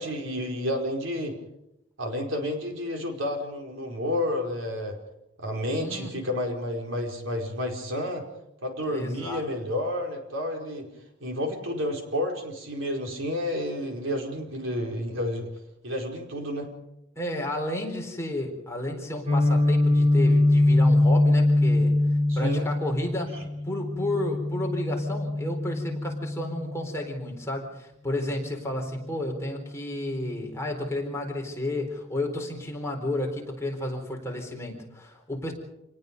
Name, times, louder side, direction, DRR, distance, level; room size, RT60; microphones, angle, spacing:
voice 1, 0.0-1.3 2.0-4.9 5.4-8.2 8.6-10.9 11.2-15.5 15.8-16.7 22.3-22.7, left 1 dB, 65° right, 2 dB, 4.8 m, -30 dB
voice 2, 5.8-6.1 8.9-9.4 17.1-22.0 22.3-35.5, left 1 dB, 15° left, 1 dB, 4.2 m, -32 dB
Guitar, 19.3-27.1, left 2 dB, 30° right, 3.0 m, -23 dB
28.0 x 19.5 x 5.4 m, 0.87 s
head